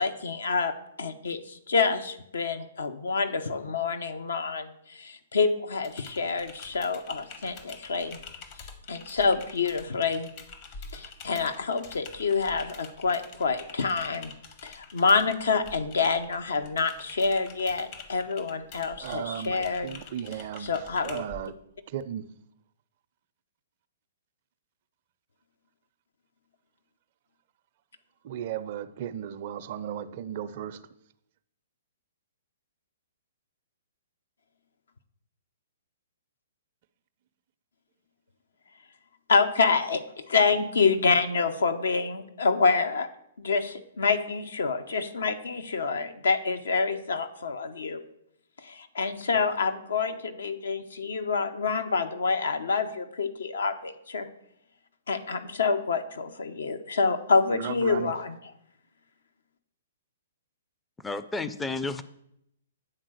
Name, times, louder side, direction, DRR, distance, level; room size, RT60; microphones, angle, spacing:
voice 1, 0.0-8.2 8.9-10.3 10.9-14.3 14.6-19.9 20.6-21.2 39.3-43.1 43.4-48.0 48.6-54.3 55.1-58.4, left 4 dB, 70° left, 8 dB, 0.7 m, -27 dB
Typing, 5.8-21.5, left 5 dB, 40° left, 0.9 m, -47 dB
voice 2, 19.0-20.7 21.0-21.5 21.9-22.2 28.2-30.8 57.5-58.1, right 10 dB, 45° right, 13 dB, 0.5 m, -35 dB
voice 3, 61.0-62.0, left 3 dB, 10° left, 12 dB, 0.4 m, -32 dB
8.9 x 3.8 x 6.3 m, 0.76 s
figure-of-eight pair, 125°, 0 cm